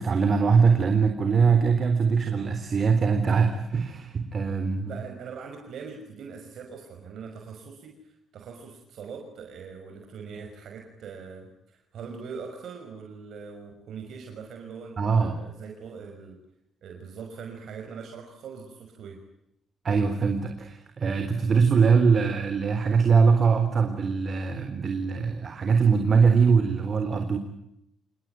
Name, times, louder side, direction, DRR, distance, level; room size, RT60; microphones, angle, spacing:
voice 1, 0.0-4.9 15.0-15.4 19.8-27.4, right 5 dB, 45° right, 6 dB, 3.8 m, -22 dB
voice 2, 4.8-16.4 16.8-19.2, right 5 dB, 70° right, 3 dB, 5.9 m, -42 dB
28.0 x 20.0 x 9.4 m, 0.79 s
cardioid pair, 90°, 0 cm